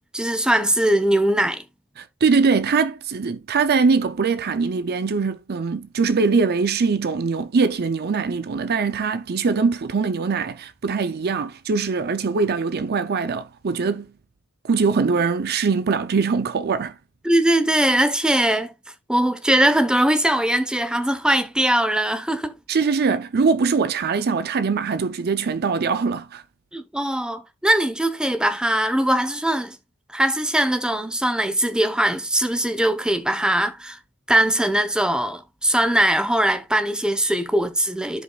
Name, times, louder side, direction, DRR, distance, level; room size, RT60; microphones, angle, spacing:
voice 1, 0.1-1.6 17.2-18.7 19.1-22.5 26.7-29.8 30.1-34.0 34.3-38.2, right 1 dB, 5° right, 0.9 m, -21 dB
voice 2, 2.0-14.1 14.6-16.9 22.7-26.4, right 4 dB, 45° right, 0.5 m, -22 dB
14.5 x 5.1 x 2.3 m
head